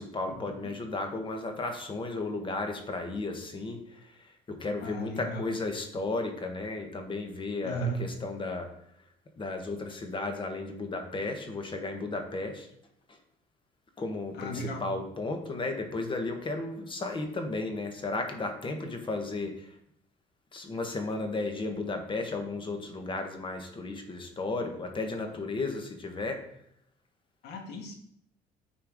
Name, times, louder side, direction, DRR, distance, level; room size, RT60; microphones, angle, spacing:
voice 1, 0.0-3.8 4.5-8.7 9.4-12.7 14.0-19.7 20.5-26.4, left 3 dB, 30° left, 5 dB, 1.3 m, -34 dB
voice 2, 4.8-5.5 7.6-8.0 14.3-14.9 27.4-28.0, right 2 dB, 80° left, 3 dB, 1.6 m, -35 dB
9.0 x 4.5 x 3.6 m, 0.71 s
cardioid pair, 110°, 17 cm